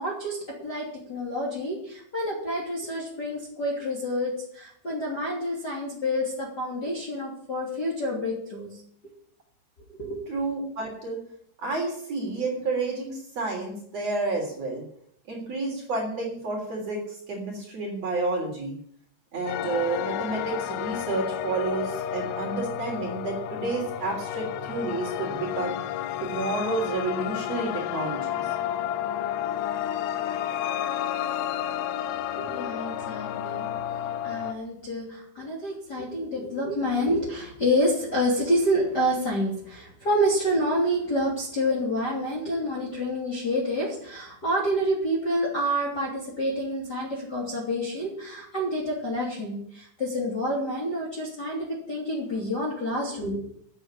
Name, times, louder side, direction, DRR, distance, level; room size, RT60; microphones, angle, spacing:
voice 1, 0.0-8.8 9.9-10.2 32.3-33.7 34.2-53.4, equal, 25° left, -3 dB, 2.8 m, -28 dB
voice 2, 10.3-11.2 11.6-14.8 15.3-18.7 19.3-25.8 26.2-28.5, right 3 dB, 40° right, -1 dB, 4.0 m, -30 dB
sound 1, 19.5-34.5, left 11 dB, 75° left, 2.7 m, -31 dB
9.1 x 9.1 x 9.9 m, 0.66 s
omnidirectional pair, 5.3 m